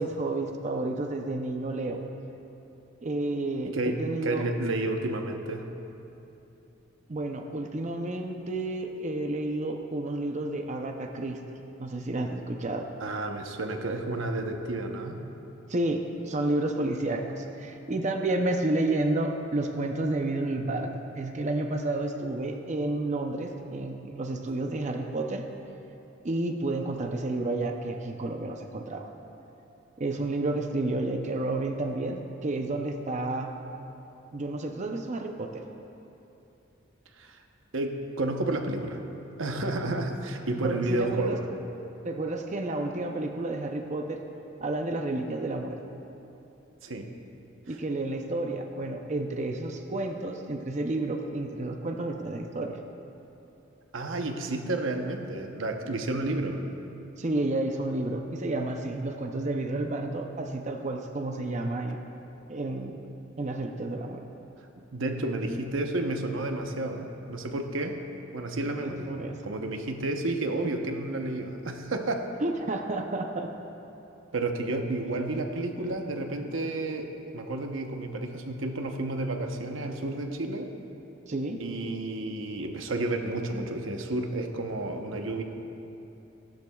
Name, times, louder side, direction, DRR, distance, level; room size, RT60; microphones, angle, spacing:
voice 1, 0.0-2.0 3.0-4.5 7.1-11.4 11.8-12.9 15.7-25.4 26.2-29.1 30.0-33.6 34.3-35.6 40.6-41.4 42.0-44.2 44.6-45.8 47.7-52.8 57.2-62.0 62.5-63.0 63.4-64.2 68.8-69.4 72.4-73.5 75.8-75.9 81.3-81.6, right 2 dB, 35° right, 4 dB, 0.6 m, -31 dB
voice 2, 3.6-5.7 13.0-15.2 37.2-37.4 37.7-39.0 39.4-41.5 46.8-47.1 47.7-47.8 53.9-56.6 64.8-68.0 68.3-69.1 69.4-72.3 74.3-80.7 81.6-85.4, right 2 dB, 80° right, 4 dB, 0.9 m, -31 dB
17.0 x 11.5 x 2.3 m, 2.9 s
head